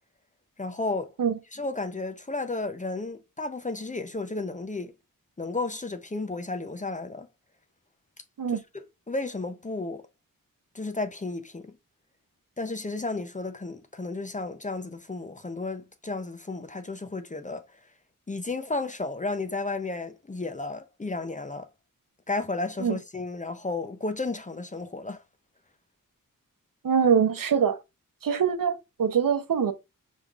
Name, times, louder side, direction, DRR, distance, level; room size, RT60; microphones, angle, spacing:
voice 1, 0.6-1.1 1.5-4.9 5.4-7.3 8.5-10.0 10.7-11.7 12.6-17.6 18.3-21.7 22.3-25.2, left 3 dB, 20° left, 0.5 m, -33 dB
voice 2, 26.8-27.8 28.2-29.7, right 7 dB, 75° right, 0.7 m, -23 dB
5.3 x 3.2 x 2.4 m
wide cardioid pair, 80°, 34 cm